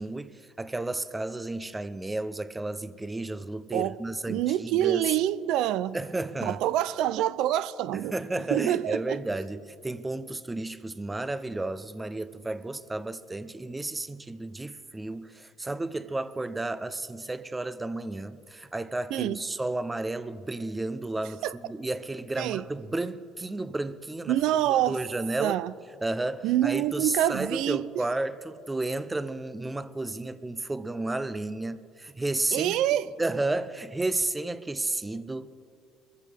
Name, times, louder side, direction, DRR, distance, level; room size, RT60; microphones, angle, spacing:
voice 1, 0.0-5.1 5.9-6.6 8.1-24.4 24.7-25.6 26.0-32.8 33.2-35.5, right 2 dB, 10° right, 0.5 m, -32 dB
voice 2, 4.3-6.0 6.4-8.2 8.5-9.2 19.1-19.4 21.4-21.6 22.4-22.6 24.3-25.0 25.4-25.7 26.4-27.9 32.5-33.1, right 13 dB, 70° right, 0.4 m, -26 dB
23.5 x 14.5 x 3.4 m
cardioid pair, 140°, 0 cm